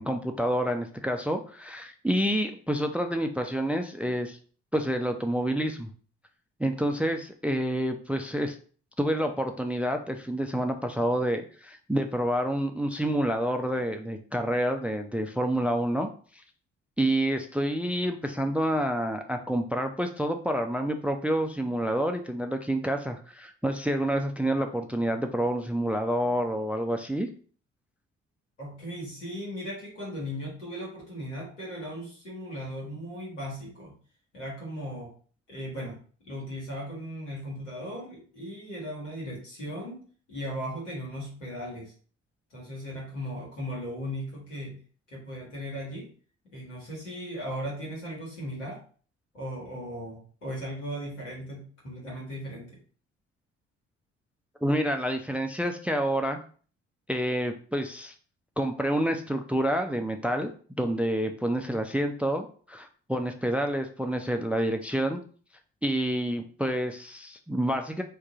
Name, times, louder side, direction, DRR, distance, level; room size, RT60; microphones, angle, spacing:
voice 1, 0.0-4.4 4.7-5.9 6.6-8.6 9.0-16.1 17.0-27.3 54.6-56.4 57.1-58.1 58.6-60.5 60.8-65.2 65.8-68.0, equal, 5° right, 6 dB, 0.3 m, -28 dB
voice 2, 28.6-33.9 34.3-35.1 35.5-36.0 36.2-40.0 40.3-41.9 42.5-44.8 45.1-46.1 46.5-48.8 49.3-52.8, equal, 85° left, -4 dB, 1.1 m, -37 dB
3.6 x 2.3 x 3.6 m, 0.42 s
figure-of-eight pair, 40°, 35 cm